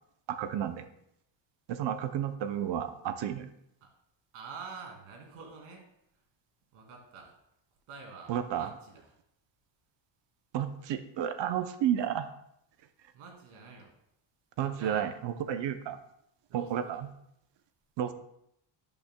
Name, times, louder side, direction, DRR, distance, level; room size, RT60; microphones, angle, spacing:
voice 1, 0.3-0.8 1.7-3.5 8.3-8.7 10.5-12.3 14.6-16.0 16.5-17.1 18.0-18.1, right 10 dB, 60° right, 10 dB, 0.7 m, -32 dB
voice 2, 4.3-5.9 6.1-6.2 6.7-7.3 7.9-9.1 13.1-13.9 14.6-15.0 16.5-17.0, right 5 dB, 85° right, 1 dB, 2.6 m, -47 dB
12.0 x 8.8 x 2.2 m, 0.77 s
cardioid pair, 110°, 50 cm